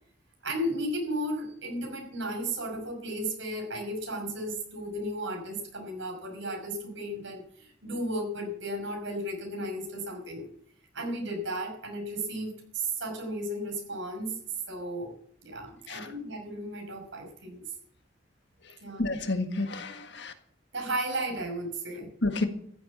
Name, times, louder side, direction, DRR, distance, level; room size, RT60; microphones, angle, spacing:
voice 1, 0.4-10.4 10.9-14.4 14.7-15.1 15.4-17.6 18.8-19.0 20.7-22.1, right 1 dB, 80° right, 2 dB, 5.9 m, -34 dB
voice 2, 18.6-20.3 22.2-22.5, left 2 dB, 65° left, 7 dB, 1.7 m, -31 dB
14.5 x 7.9 x 8.7 m, 0.64 s
head